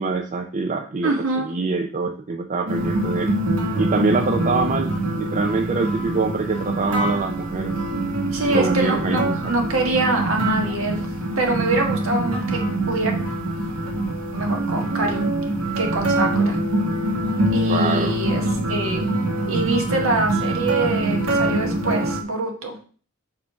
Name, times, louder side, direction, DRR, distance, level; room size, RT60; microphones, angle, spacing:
voice 1, 0.0-3.3 3.8-7.7 8.0-8.2 8.4-9.5 17.7-18.2, right 3 dB, 35° right, 5 dB, 0.4 m, -24 dB
voice 2, 1.0-1.5 8.3-11.0 11.4-12.6 12.9-13.1 14.3-15.3 15.7-16.6 17.5-19.1 19.5-22.8, right 2 dB, 60° right, 1 dB, 1.6 m, -24 dB
sound 1, 2.7-22.2, right 1 dB, 85° right, 1.4 m, -24 dB
5.0 x 4.2 x 5.7 m, 0.41 s
head